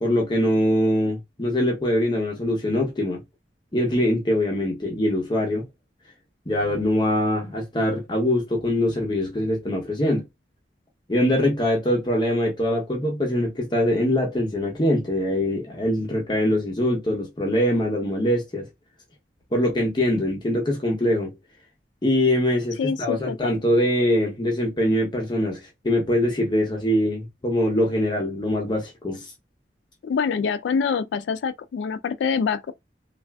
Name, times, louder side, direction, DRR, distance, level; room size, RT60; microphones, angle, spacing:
voice 1, 0.0-3.2 3.7-5.6 6.5-10.2 11.1-18.7 19.5-21.3 22.0-29.3, left 1 dB, 25° left, 0.7 m, -23 dB
voice 2, 22.8-23.5 30.0-32.7, left 6 dB, 80° left, 0.3 m, -25 dB
3.3 x 2.4 x 2.2 m
head